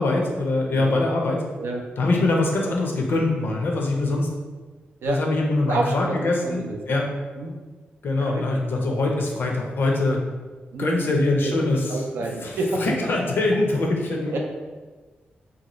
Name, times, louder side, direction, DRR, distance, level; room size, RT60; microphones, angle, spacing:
voice 1, 0.0-1.5 2.0-4.3 5.1-7.1 8.0-10.2 10.8-12.0 12.4-14.4, left 2 dB, 65° left, 0 dB, 0.5 m, -23 dB
voice 2, 0.7-1.0 1.6-1.8 4.0-4.1 5.0-5.2 5.7-6.2 6.4-7.0 7.4-7.6 8.2-8.4 10.7-11.1 11.4-12.8 14.3-14.4, right 2 dB, 85° right, 1 dB, 0.4 m, -29 dB
2.7 x 2.4 x 2.9 m, 1.4 s
cardioid pair, 75°, 4 cm